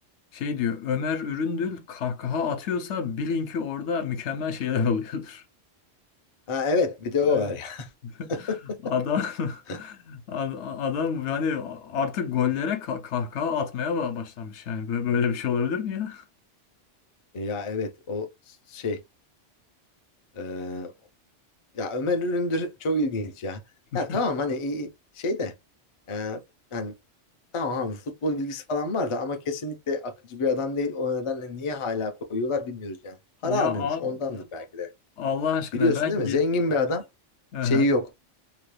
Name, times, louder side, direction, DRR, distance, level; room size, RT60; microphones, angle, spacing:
voice 1, 0.3-5.4 7.3-7.4 8.0-8.5 8.8-16.2 23.9-24.2 33.4-34.1 35.2-36.4 37.5-37.9, left 6 dB, 75° left, 0.9 m, -28 dB
voice 2, 6.5-7.9 8.3-8.8 9.7-9.8 17.3-19.0 20.3-20.9 21.7-23.6 23.9-25.5 26.1-26.4 26.7-26.9 27.5-33.2 33.4-34.9 35.7-37.0 37.6-38.1, left 3 dB, 45° left, 0.4 m, -27 dB
2.9 x 2.2 x 3.2 m
omnidirectional pair, 1.2 m